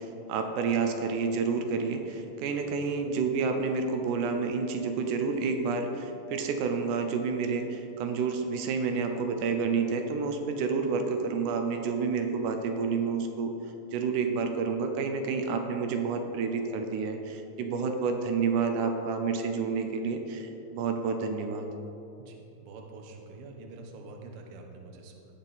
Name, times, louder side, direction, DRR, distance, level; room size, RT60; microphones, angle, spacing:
voice 1, 0.0-13.5 13.9-21.7, right 5 dB, 80° right, 5 dB, 2.2 m, -29 dB
voice 2, 22.2-25.3, right 3 dB, 65° right, 2 dB, 1.7 m, -46 dB
17.0 x 5.9 x 4.1 m, 3.0 s
omnidirectional pair, 3.6 m